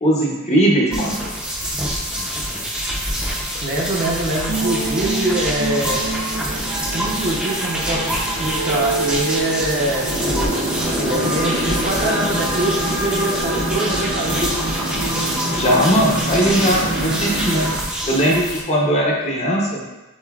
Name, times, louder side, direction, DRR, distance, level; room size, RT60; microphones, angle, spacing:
voice 1, 0.0-1.2 15.4-17.7 18.1-19.9, equal, 30° left, -2 dB, 0.7 m, -19 dB
sound 1, 0.9-18.6, equal, 5° right, 0.5 m, -26 dB
voice 2, 3.6-6.0 6.9-10.1 11.0-14.5, right 1 dB, 40° right, -2 dB, 0.7 m, -24 dB
sound 2, 4.5-17.8, right 1 dB, 80° right, 1.1 m, -25 dB
7.0 x 2.6 x 2.3 m, 1.0 s
head